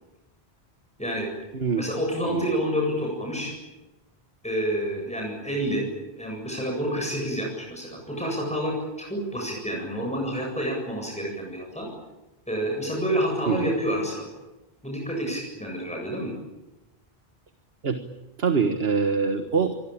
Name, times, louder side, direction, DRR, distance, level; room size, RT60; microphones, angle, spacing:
voice 1, 1.0-1.3 1.7-3.5 4.4-5.8 6.2-11.9 12.5-14.3 14.8-16.3, equal, 5° left, 0 dB, 8.0 m, -28 dB
voice 2, 1.5-1.9 2.3-2.5 13.5-13.7 17.8-18.0 18.4-19.7, right 5 dB, 70° right, 7 dB, 1.7 m, -24 dB
26.5 x 22.5 x 8.8 m, 1.0 s
omnidirectional pair, 1.1 m